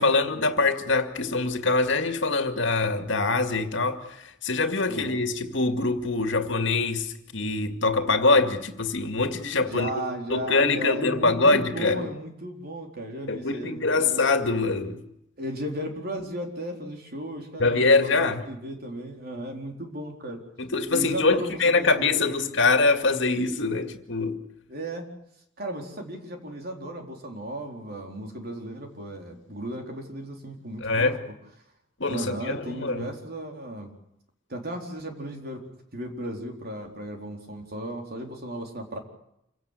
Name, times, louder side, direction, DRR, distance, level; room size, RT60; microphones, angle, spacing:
voice 1, 0.0-9.9 10.3-12.1 13.3-15.0 17.6-18.5 20.6-24.4 30.8-31.2 32.0-33.1, left 3 dB, 65° left, 2.2 m, -24 dB
voice 2, 4.9-5.2 9.6-14.3 15.4-20.4 20.9-22.4 24.7-25.1 25.6-31.1 32.1-33.9 34.5-39.0, right 1 dB, 50° right, 4.2 m, -35 dB
27.0 x 16.5 x 8.3 m
head